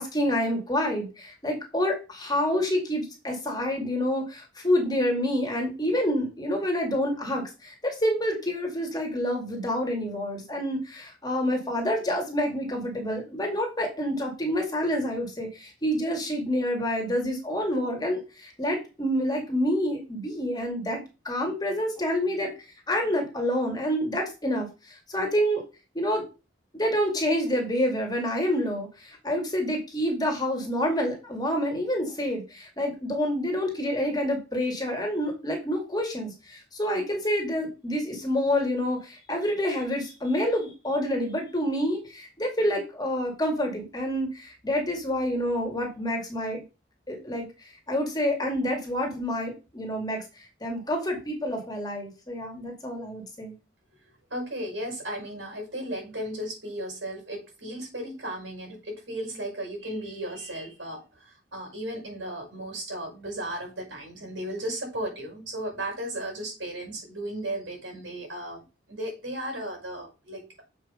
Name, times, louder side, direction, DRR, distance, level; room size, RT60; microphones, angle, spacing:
voice 1, 0.0-21.0 21.2-22.5 22.9-24.7 25.1-25.6 25.9-26.2 26.7-46.6 47.1-47.5 47.9-50.2 50.6-53.6, equal, 20° left, 1 dB, 2.2 m, -28 dB
voice 2, 54.3-70.6, right 1 dB, 80° right, 0 dB, 5.6 m, -35 dB
7.3 x 5.3 x 5.1 m, 0.30 s
head